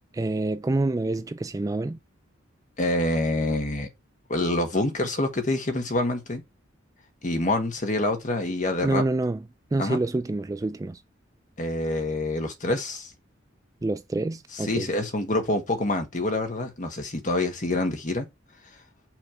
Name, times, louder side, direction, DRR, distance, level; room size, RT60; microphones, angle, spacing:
voice 1, 0.1-2.0 8.8-9.4 9.7-11.0 13.8-14.9, right 2 dB, 15° right, 0.3 m, -27 dB
voice 2, 2.8-3.9 4.3-6.4 7.2-9.0 9.8-10.0 11.6-13.1 14.6-18.3, left 2 dB, 40° left, 1.5 m, -26 dB
6.1 x 3.3 x 5.6 m
head